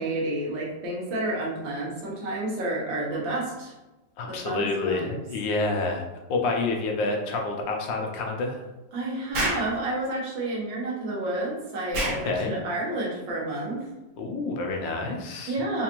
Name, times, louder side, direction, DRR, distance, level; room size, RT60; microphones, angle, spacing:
voice 1, 0.0-3.7 4.3-5.2 8.9-13.9 15.5-15.8, right 2 dB, 90° right, -4 dB, 1.8 m, -30 dB
voice 2, 4.2-6.0 6.3-8.6 12.0-12.5 14.2-15.5, left 3 dB, 85° left, 1 dB, 1.4 m, -28 dB
Explosion, 9.3-9.7 11.9-12.2, right 1 dB, 50° right, 1.3 m, -26 dB
4.7 x 2.6 x 2.9 m, 1.1 s
omnidirectional pair, 2.0 m